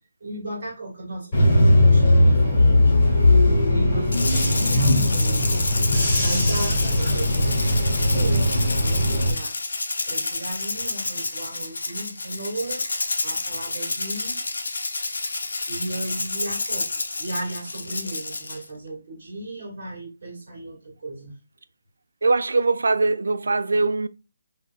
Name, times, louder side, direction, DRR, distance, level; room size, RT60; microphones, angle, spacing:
voice 1, 0.2-1.3 1.7-3.0 3.7-5.8 6.2-9.5 10.0-12.8 13.2-14.4 15.7-21.3, right 1 dB, 40° right, 1.9 m, -35 dB
Bus / Engine, 1.3-9.3, left 1 dB, 20° left, 1.8 m, -19 dB
Rattle (instrument), 4.1-18.6, left 3 dB, 85° left, 0.7 m, -29 dB
voice 2, 22.2-24.1, right 3 dB, 85° right, 0.3 m, -21 dB
4.8 x 2.8 x 2.2 m
hypercardioid pair, 180°, 0 cm